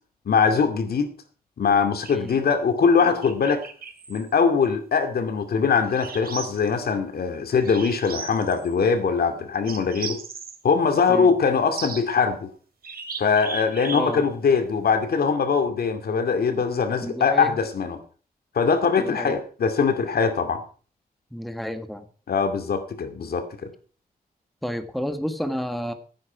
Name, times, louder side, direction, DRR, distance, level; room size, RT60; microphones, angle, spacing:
voice 1, 0.3-1.1 1.6-3.6 4.1-10.2 10.6-12.5 13.2-18.0 18.5-20.6 22.3-23.7, left 5 dB, 75° left, 7 dB, 2.4 m, -22 dB
sound 1, 2.0-2.4 3.0-4.3 5.9-6.7 7.6-8.7 9.7-10.6 11.7-12.2 12.8-14.2, right 6 dB, 75° right, 2.5 m, -37 dB
voice 2, 13.9-14.2 17.0-17.5 19.0-19.4 21.3-22.1 24.6-25.9, equal, ahead, 8 dB, 1.6 m, -30 dB
15.5 x 9.4 x 5.1 m, 0.39 s
wide cardioid pair, 105°, 16 cm